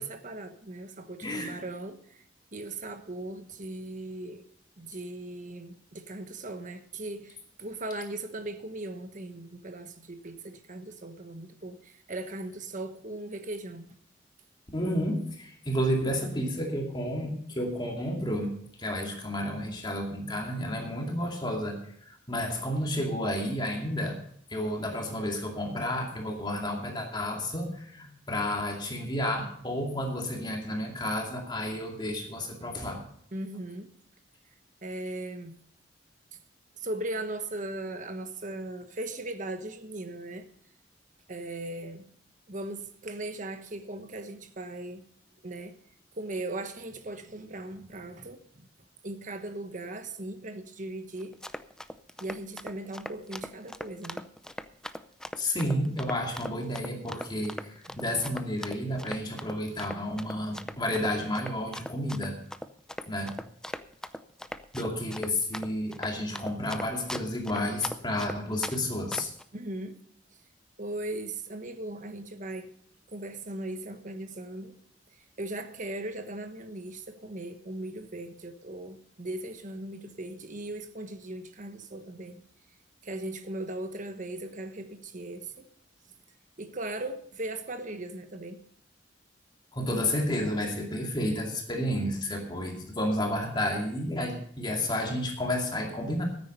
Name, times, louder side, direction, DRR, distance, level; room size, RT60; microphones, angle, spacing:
voice 1, 0.0-2.2 2.5-4.4 4.8-13.8 33.3-33.9 34.8-35.6 36.3-36.4 36.8-40.5 41.3-42.1 42.5-45.0 45.4-45.8 46.1-48.7 49.0-51.3 52.2-54.2 57.9-58.1 69.5-70.0 70.8-72.7 73.1-74.7 75.1-82.4 83.0-85.7 86.6-88.6, right 2 dB, 45° right, 8 dB, 1.2 m, -38 dB
voice 2, 1.2-1.6 14.7-24.2 24.5-33.0 55.4-62.4 63.1-63.4 64.7-69.3 89.7-96.2, left 1 dB, 25° left, 1 dB, 2.4 m, -31 dB
Run, 51.2-68.8 69.1-69.4, left 1 dB, 5° left, 0.5 m, -39 dB
13.5 x 9.8 x 5.4 m, 0.64 s
head